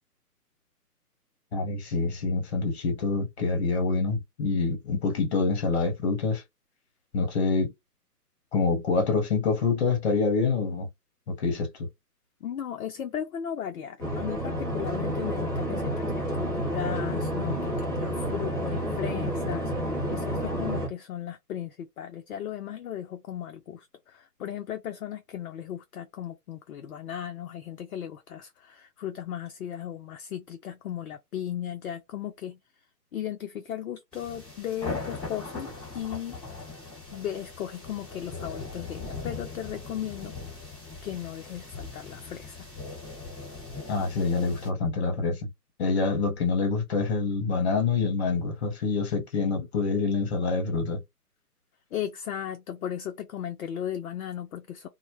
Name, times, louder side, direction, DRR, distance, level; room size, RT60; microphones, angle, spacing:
voice 1, 1.5-6.4 7.1-7.7 8.5-10.9 11.3-11.9 43.9-45.5 45.8-51.0, left 4 dB, 40° left, 0.9 m, -26 dB
voice 2, 12.4-19.7 20.1-32.6 33.1-36.4 37.1-42.7 51.9-54.9, left 10 dB, 60° left, 0.5 m, -36 dB
sound 1, 14.0-20.9, equal, 15° right, 0.5 m, -30 dB
sound 2, 34.1-44.7, left 3 dB, ahead, 0.9 m, -40 dB
2.1 x 2.0 x 2.9 m
hypercardioid pair, 150°, 48 cm